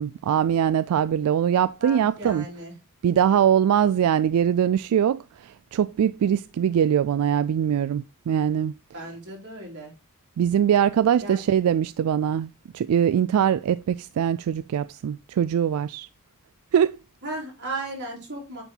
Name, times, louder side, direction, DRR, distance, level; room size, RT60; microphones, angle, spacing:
voice 1, 0.0-2.4 3.0-8.7 10.4-16.1 16.7-17.0, right 9 dB, 80° right, 0.3 m, -22 dB
voice 2, 1.8-2.7 8.9-9.9 11.2-11.4 17.2-18.6, right 2 dB, 55° right, 3.9 m, -35 dB
9.0 x 4.5 x 3.8 m
head